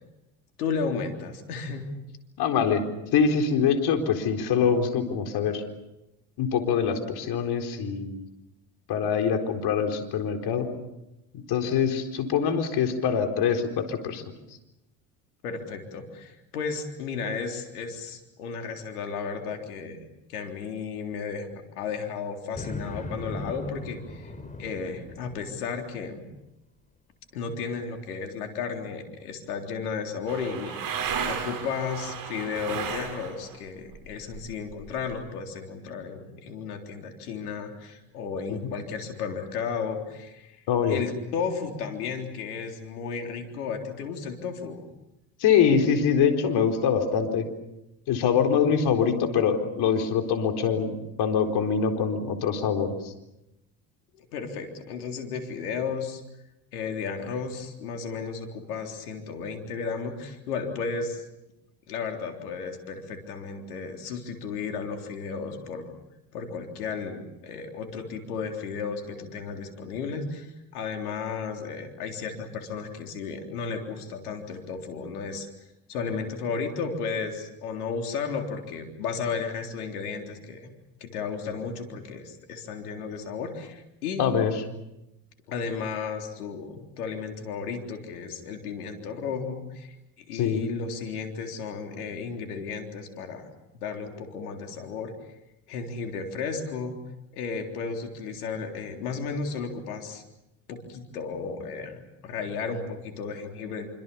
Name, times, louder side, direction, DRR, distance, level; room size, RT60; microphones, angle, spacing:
voice 1, 0.6-1.9 15.4-26.2 27.3-44.8 54.1-56.2 56.7-61.3 61.9-65.9 66.3-75.5 75.9-80.7 81.0-84.3 85.5-93.5 93.7-95.1 95.7-97.0 97.3-100.2 100.7-103.9, left 5 dB, 90° left, 3 dB, 3.7 m, -34 dB
voice 2, 2.4-2.8 3.1-5.6 6.4-8.2 8.9-10.7 11.5-14.2 38.5-38.6 40.7-41.0 45.4-47.5 48.1-52.9 84.2-84.5 90.3-90.6, left 7 dB, 60° left, 5 dB, 4.3 m, -24 dB
sound 1, 22.5-25.6, left 2 dB, 15° left, 5.5 m, -38 dB
sound 2, 30.3-33.6 33.9-35.2, right 7 dB, 50° right, 6.8 m, -34 dB
27.0 x 25.5 x 7.0 m, 0.91 s
hypercardioid pair, 75°, 44 cm